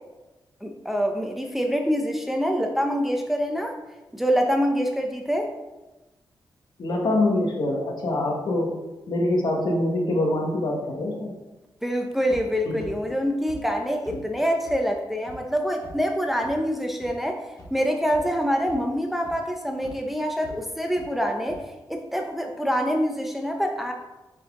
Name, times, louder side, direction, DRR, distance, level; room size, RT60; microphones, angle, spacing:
voice 1, 0.6-3.8 4.1-5.5 11.8-23.9, equal, 5° right, 3 dB, 0.6 m, -25 dB
voice 2, 6.8-8.8 9.1-11.3 14.1-14.2, left 1 dB, 65° left, 0 dB, 1.6 m, -24 dB
sound 1, 12.3-12.4 12.8-12.9 13.5-13.6 14.0-14.2 14.7-14.8 15.3-15.4 15.8-15.9 16.4-16.5 17.0-17.1 17.6-17.7 18.1-18.4 18.7-18.8 19.2-19.3 19.8-19.9 20.4-20.5 21.0-21.1 21.5-21.6, equal, 50° left, 2.3 m, -43 dB
8.0 x 4.6 x 3.7 m, 1.1 s
wide cardioid pair, 140°, 8 cm